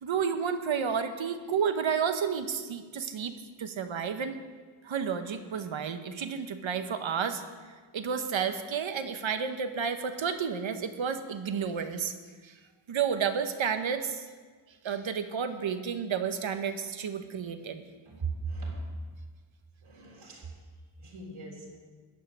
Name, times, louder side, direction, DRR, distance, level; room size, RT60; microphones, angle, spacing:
voice 1, 0.0-3.3 3.6-4.4 4.8-7.4 7.9-12.1 12.4-12.6 12.9-14.2 14.8-17.8, right 7 dB, 70° right, 8 dB, 1.2 m, -31 dB
voice 2, 18.0-18.9 19.8-20.6 21.0-21.8, right 4 dB, 85° right, -2 dB, 3.7 m, -38 dB
14.5 x 5.7 x 9.9 m, 1.5 s
wide cardioid pair, 95°, 49 cm